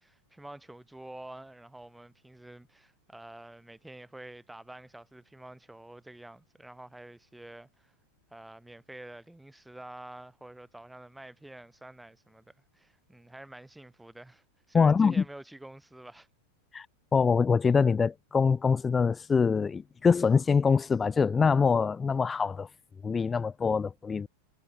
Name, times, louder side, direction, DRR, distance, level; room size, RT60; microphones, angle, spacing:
voice 1, 0.0-7.9 8.3-16.3, right 1 dB, 5° right, 1.4 m, -48 dB
voice 2, 14.7-15.2 16.7-16.9 17.1-22.7 23.0-24.3, left 5 dB, 15° left, 0.4 m, -24 dB
figure-of-eight pair, 90°, 0 cm